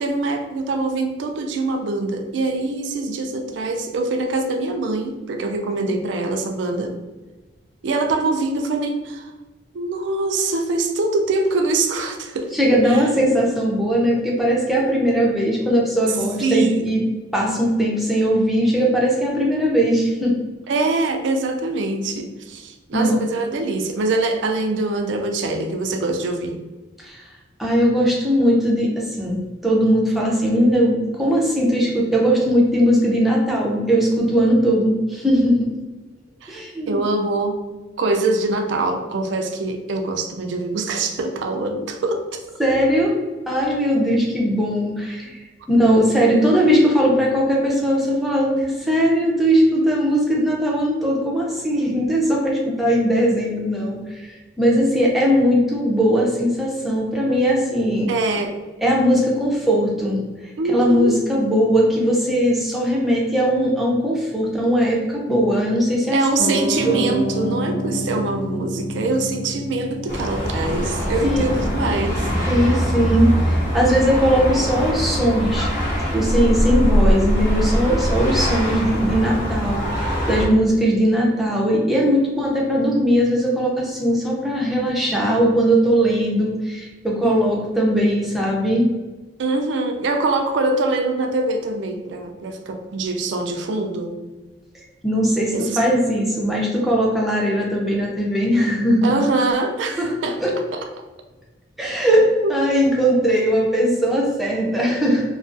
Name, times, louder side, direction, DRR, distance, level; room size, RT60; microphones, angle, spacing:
voice 1, 0.0-7.0 7.8-9.3 9.7-12.5 12.9-13.1 16.4-16.9 20.7-26.6 36.4-36.6 36.9-37.6 38.0-42.4 58.1-58.6 60.6-61.2 66.1-72.3 89.4-94.2 95.5-95.8 99.0-100.4 100.7-100.8 102.4-102.5, right 3 dB, 75° right, 4 dB, 0.4 m, -23 dB
voice 2, 12.5-17.0 17.3-20.3 22.9-23.2 27.0-27.2 27.6-35.7 36.5-37.0 42.6-43.2 43.5-54.3 54.6-58.1 58.8-60.2 60.7-66.2 66.8-67.0 71.2-71.5 72.5-75.7 76.1-88.9 95.0-99.2 100.0-100.1 100.4-100.5 101.8-105.2, equal, ahead, -4 dB, 0.4 m, -19 dB
Piano, 66.4-72.9, equal, 90° left, 0.5 m, -29 dB
sound 1, 70.1-80.5, equal, 45° left, 0.9 m, -22 dB
2.4 x 2.3 x 2.5 m, 1.2 s
head